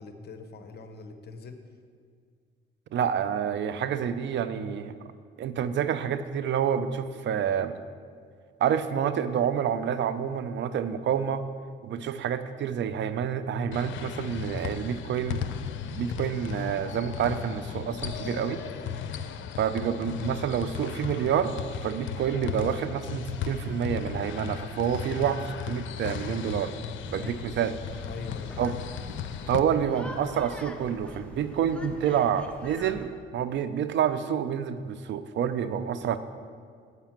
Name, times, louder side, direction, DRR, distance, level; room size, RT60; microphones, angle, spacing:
voice 1, 0.0-1.6 16.0-16.3 27.6-27.8 28.0-28.7, left 4 dB, 55° left, 7 dB, 0.9 m, -43 dB
voice 2, 2.9-4.9 5.4-7.7 8.6-11.4 11.8-15.5 16.0-18.6 19.6-21.5 21.8-26.7 27.1-27.8 28.6-28.8 29.5-36.2, right 8 dB, 65° right, 12 dB, 0.6 m, -28 dB
sound 1, 13.7-29.6, left 8 dB, 75° left, 0.6 m, -36 dB
sound 2, 27.0-33.1, left 1 dB, 5° left, 0.9 m, -44 dB
8.1 x 5.9 x 7.4 m, 2.1 s
cardioid pair, 90°, 20 cm